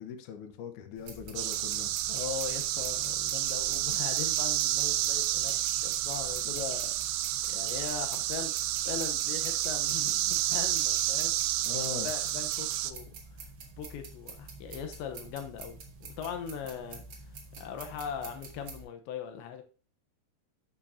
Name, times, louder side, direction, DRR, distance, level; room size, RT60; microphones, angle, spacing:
voice 1, 0.0-1.9 11.6-12.1, left 8 dB, 65° left, 2.1 m, -40 dB
sound 1, 1.0-18.8, right 4 dB, 55° right, 1.5 m, -47 dB
sound 2, 1.4-12.9, right 14 dB, 85° right, 2.3 m, -30 dB
voice 2, 2.1-5.5 5.8-6.9 7.5-11.4 12.0-13.4 13.8-17.0 17.6-19.6, left 7 dB, 90° left, 3.4 m, -40 dB
11.0 x 7.4 x 2.8 m
omnidirectional pair, 5.0 m